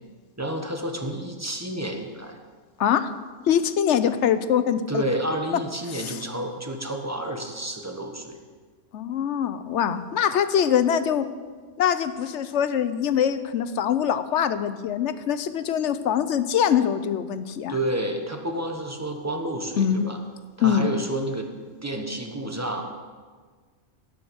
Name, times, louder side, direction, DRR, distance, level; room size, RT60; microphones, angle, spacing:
voice 1, 0.4-2.4 4.9-8.4 17.7-20.2 20.6-21.5 21.8-22.8, right 1 dB, 15° right, 3 dB, 1.2 m, -30 dB
voice 2, 2.8-5.0 5.9-6.2 8.9-11.3 11.8-17.7 19.8-20.1 20.6-20.9, left 8 dB, 75° left, 12 dB, 1.0 m, -23 dB
17.0 x 6.5 x 7.0 m, 1.5 s
omnidirectional pair, 1.2 m